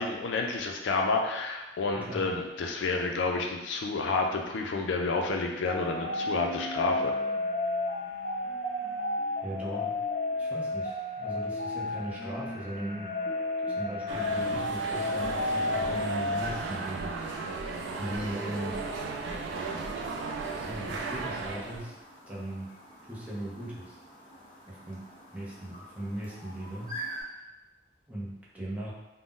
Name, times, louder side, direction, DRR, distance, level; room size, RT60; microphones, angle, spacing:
voice 1, 0.0-7.1, left 3 dB, 70° left, 2 dB, 0.4 m, -30 dB
voice 2, 1.9-2.3 9.4-10.0 10.4-13.2 13.8-18.8 20.5-21.9 22.3-22.7 23.0-24.0 24.7-25.0 25.3-27.3 28.1-28.9, right 1 dB, 10° right, -6 dB, 0.6 m, -38 dB
sound 1, 5.6-16.4, left 2 dB, 50° left, 1.1 m, -32 dB
sound 2, 14.1-21.9, right 3 dB, 75° right, 0.4 m, -35 dB
Chirp tweet, 21.6-27.2, right 1 dB, 30° left, 0.7 m, -46 dB
2.5 x 2.0 x 3.6 m, 1.0 s
head